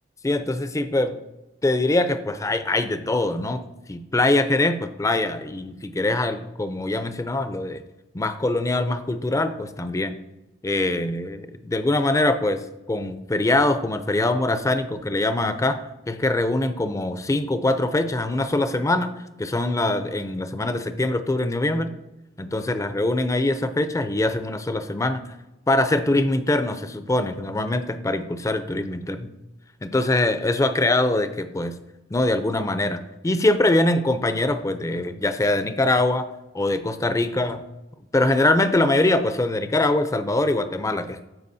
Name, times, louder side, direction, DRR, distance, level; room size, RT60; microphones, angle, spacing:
voice 1, 0.2-1.2 1.6-3.6 3.9-7.8 8.1-10.1 10.6-12.6 12.9-15.8 16.1-19.1 19.4-21.9 22.4-25.2 25.7-29.3 29.8-31.8 32.1-36.3 36.5-37.6 38.1-41.2, left 2 dB, 15° left, 10 dB, 0.4 m, -23 dB
13.5 x 4.9 x 2.7 m, 0.98 s
head